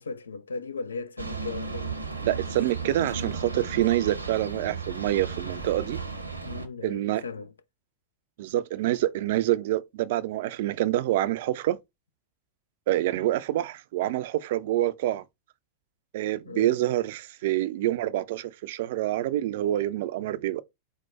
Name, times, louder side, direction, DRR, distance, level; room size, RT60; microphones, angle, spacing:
voice 1, 0.0-1.9 6.4-7.5 16.5-16.8, left 4 dB, 75° left, 0.4 m, -37 dB
sound 1, 1.2-6.7, right 4 dB, 85° right, 0.7 m, -35 dB
voice 2, 2.2-6.0 6.8-7.2 8.4-11.8 12.9-15.2 16.1-20.6, right 14 dB, 55° right, 0.4 m, -27 dB
4.5 x 2.2 x 4.2 m
figure-of-eight pair, 90°, 0 cm